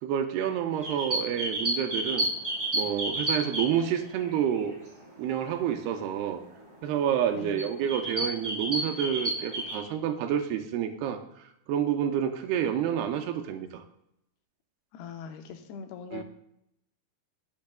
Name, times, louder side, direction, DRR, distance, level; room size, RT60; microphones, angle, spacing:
voice 1, 0.0-2.3 2.7-4.8 5.2-6.4 6.8-11.2 11.7-13.8 16.1-16.2, right 9 dB, 90° right, 6 dB, 2.7 m, -29 dB
sound 1, 0.7-4.8 5.3-5.4 6.4-6.5 7.0-7.3 7.6-9.8, right 1 dB, 35° right, 0.8 m, -31 dB
voice 2, 7.3-7.7 14.9-16.2, left 7 dB, 85° left, 6 dB, 2.9 m, -41 dB
19.0 x 6.4 x 2.3 m, 0.78 s
omnidirectional pair, 4.6 m